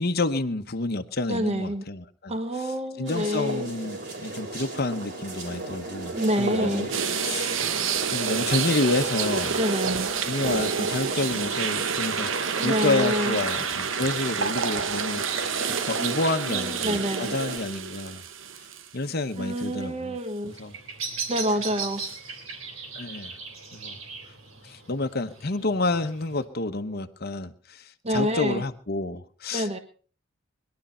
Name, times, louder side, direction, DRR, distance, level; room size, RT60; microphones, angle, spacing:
voice 1, 0.0-6.9 7.2-7.6 8.1-9.6 10.3-15.5 15.8-18.2 18.6-18.7 18.9-20.2 20.6-20.7 22.9-23.4 23.7-24.0 24.6-29.8, left 2 dB, 50° left, 7 dB, 1.1 m, -29 dB
voice 2, 1.3-1.8 2.3-3.7 6.1-6.9 9.6-10.1 12.5-13.4 16.0-16.2 16.5-17.4 19.4-20.5 21.3-22.0 28.0-28.6 29.5-29.8, equal, 30° right, 8 dB, 1.3 m, -27 dB
sound 1, 3.0-17.6, right 2 dB, 55° right, 3.8 m, -35 dB
sound 2, 6.9-19.1 19.6-19.7 22.0-22.1, right 6 dB, 70° right, 1.0 m, -29 dB
Bird vocalization bird call bird song, 20.4-26.4, right 5 dB, 90° right, 3.3 m, -38 dB
21.0 x 11.5 x 4.4 m, 0.41 s
head